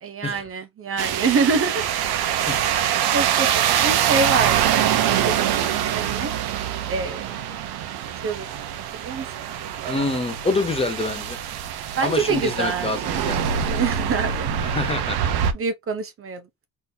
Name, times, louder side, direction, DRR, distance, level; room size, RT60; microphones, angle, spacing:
voice 1, 0.0-1.8 3.1-6.3 6.9-7.3 8.2-8.5 8.9-9.3 9.6-9.9 12.0-12.9 13.3-14.5 15.4-16.5, right 4 dB, 35° right, 0.7 m, -26 dB
sound 1, 1.0-15.5, right 9 dB, 75° right, 0.9 m, -24 dB
voice 2, 9.9-11.4 12.0-13.4 14.6-15.2, left 3 dB, 15° left, 0.6 m, -26 dB
4.1 x 3.8 x 2.7 m
cardioid pair, 165°, 39 cm